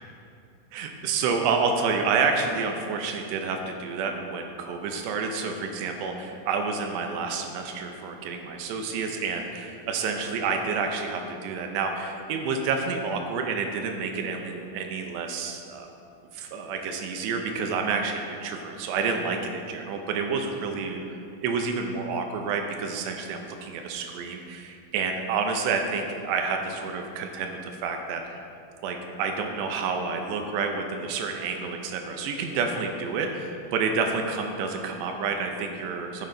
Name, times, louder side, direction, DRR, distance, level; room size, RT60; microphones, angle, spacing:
voice 1, 0.7-15.9 16.3-28.4 28.8-36.3, right 5 dB, 80° right, 4 dB, 2.6 m, -29 dB
12.0 x 8.7 x 3.9 m, 2.6 s
omnidirectional pair, 5.6 m